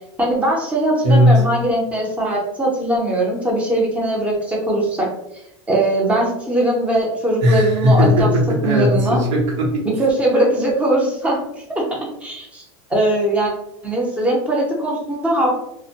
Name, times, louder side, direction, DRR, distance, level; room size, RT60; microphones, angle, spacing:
voice 1, 0.2-5.1 5.7-8.3 8.6-9.2 10.0-11.4 11.7-11.8 12.2-12.6 12.9-13.5 13.8-15.6, right 1 dB, 10° right, -3 dB, 0.6 m, -20 dB
voice 2, 1.0-1.4 7.4-9.9, left 1 dB, 70° right, -2 dB, 0.9 m, -16 dB
2.1 x 2.1 x 2.7 m, 0.81 s
supercardioid pair, 140°, 16 cm